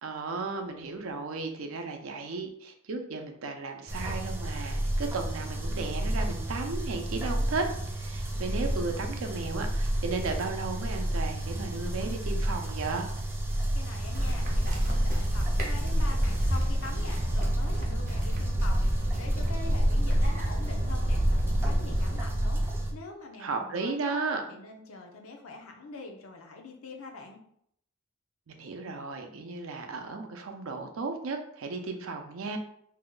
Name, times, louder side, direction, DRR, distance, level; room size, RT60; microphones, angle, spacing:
voice 1, 0.0-7.7 7.9-13.1 23.4-24.4 28.5-32.6, right 3 dB, 75° right, 5 dB, 0.5 m, -35 dB
sound 1, 3.9-22.9, right 1 dB, 10° right, 0.3 m, -31 dB
voice 2, 13.7-22.6 22.9-24.2 24.5-27.4, left 3 dB, 85° left, 3 dB, 0.6 m, -44 dB
sound 2, 14.1-22.2, equal, 40° right, 0.7 m, -29 dB
2.7 x 2.1 x 3.8 m, 0.69 s
head